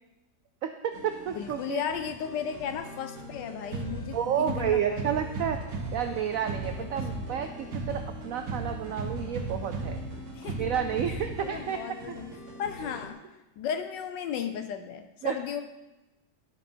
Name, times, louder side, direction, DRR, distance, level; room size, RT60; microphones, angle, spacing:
voice 1, 0.6-1.8 4.1-5.6 5.9-10.0 10.5-11.8 12.1-12.2 15.2-15.4, right 9 dB, 85° right, 7 dB, 0.7 m, -30 dB
sound 1, 0.9-13.1, equal, 45° right, 1.7 m, -45 dB
voice 2, 1.3-5.0 6.8-7.0 7.3-7.5 10.3-10.7 11.1-12.3 12.6-13.2 13.6-15.6, left 8 dB, 75° left, 8 dB, 1.2 m, -35 dB
sound 2, 3.7-11.7, right 2 dB, 60° right, 1.3 m, -36 dB
11.5 x 6.5 x 4.4 m, 1.0 s
omnidirectional pair, 2.0 m